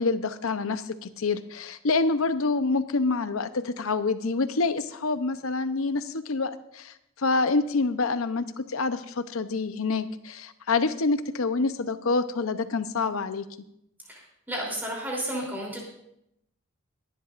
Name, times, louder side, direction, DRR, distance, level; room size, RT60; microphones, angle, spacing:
voice 1, 0.0-13.4, left 3 dB, 80° left, 11 dB, 0.7 m, -27 dB
voice 2, 14.5-15.8, right 1 dB, 10° right, -2 dB, 3.3 m, -32 dB
22.5 x 11.0 x 2.5 m, 0.78 s
head